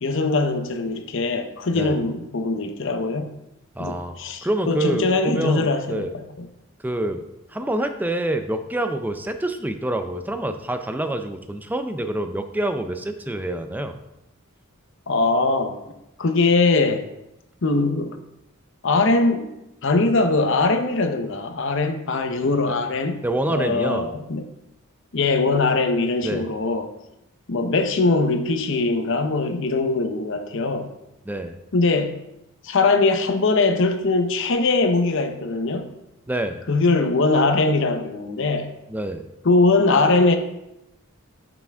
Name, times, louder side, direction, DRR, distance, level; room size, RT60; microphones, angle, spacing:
voice 1, 0.0-3.3 3.8-6.0 15.1-15.8 16.2-17.0 17.6-18.1 18.8-19.5 19.8-24.4 25.1-26.9 27.5-30.9 31.7-32.2 32.6-35.9 36.7-38.7 39.4-40.4, left 3 dB, 60° left, 0.7 m, -21 dB
voice 2, 3.8-4.2 4.4-6.1 6.8-7.2 7.5-14.0 22.7-22.8 23.2-24.1 26.2-26.4 31.3-31.5 36.3-36.6 38.9-39.2, right 1 dB, 10° right, 0.4 m, -26 dB
6.9 x 5.8 x 3.5 m
head